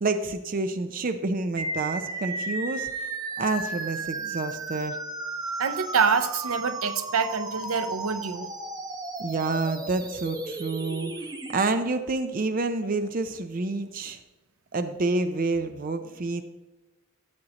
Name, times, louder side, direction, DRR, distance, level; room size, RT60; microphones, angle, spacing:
voice 1, 0.0-2.9 3.4-5.0 9.2-11.1 11.5-14.2 14.7-16.4, right 3 dB, 40° right, 9 dB, 0.4 m, -28 dB
sound 1, 1.6-11.6, right 2 dB, 20° right, 0.8 m, -34 dB
voice 2, 5.6-8.5, right 5 dB, 85° right, 11 dB, 0.6 m, -26 dB
13.0 x 7.6 x 2.9 m, 1.1 s
head